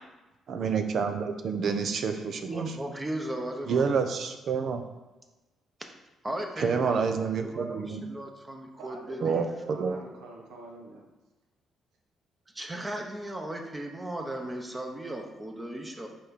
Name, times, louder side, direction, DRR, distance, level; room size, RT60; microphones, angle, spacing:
voice 1, 0.5-2.6 3.7-4.8 6.6-8.0 9.2-10.0, right 5 dB, 60° right, 7 dB, 0.7 m, -28 dB
voice 2, 2.5-3.9 6.2-7.1 7.4-9.4 12.5-16.1, right 1 dB, 20° right, 3 dB, 1.1 m, -36 dB
voice 3, 8.8-11.0, right 2 dB, 85° right, -1 dB, 1.3 m, -45 dB
6.4 x 4.8 x 4.1 m, 1.1 s
cardioid pair, 90°, 0 cm